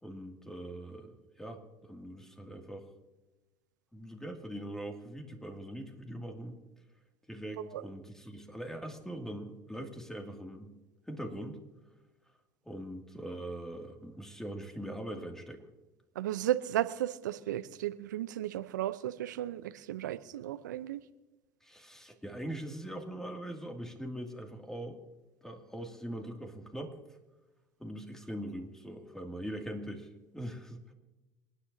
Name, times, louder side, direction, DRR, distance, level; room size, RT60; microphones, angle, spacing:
voice 1, 0.0-2.9 3.9-6.6 7.3-10.8 11.1-11.6 12.6-15.7 21.6-25.0 25.4-26.9 27.8-30.1 30.3-30.9, right 1 dB, 5° left, 4 dB, 2.4 m, -42 dB
voice 2, 16.2-21.0, right 12 dB, 85° right, 14 dB, 0.6 m, -34 dB
27.5 x 10.0 x 2.8 m, 1.1 s
hypercardioid pair, 75°, 10 cm